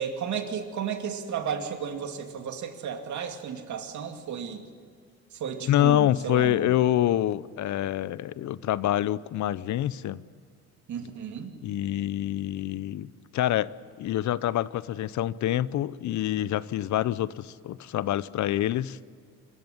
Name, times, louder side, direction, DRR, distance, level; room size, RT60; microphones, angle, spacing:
voice 1, 0.0-4.6 5.3-6.7 10.9-11.5, right 7 dB, 70° right, 5 dB, 2.5 m, -33 dB
voice 2, 5.7-10.2 11.6-13.7 14.0-19.0, left 13 dB, 70° left, 18 dB, 0.7 m, -26 dB
25.5 x 14.5 x 9.9 m, 2.3 s
cardioid pair, 90°, 30 cm